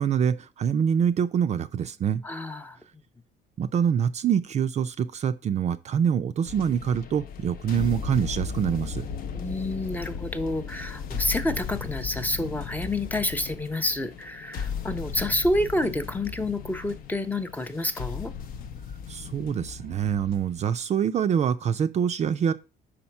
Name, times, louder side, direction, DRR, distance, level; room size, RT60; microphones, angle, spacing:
voice 1, 0.0-2.2 3.6-9.0 19.1-22.5, right 8 dB, 40° right, 0.4 m, -25 dB
voice 2, 2.2-2.8 9.3-18.3, left 1 dB, 10° left, 0.6 m, -29 dB
sound 1, 6.4-20.8, left 6 dB, 60° left, 0.7 m, -36 dB
5.1 x 4.2 x 5.7 m
cardioid pair, 110°, 17 cm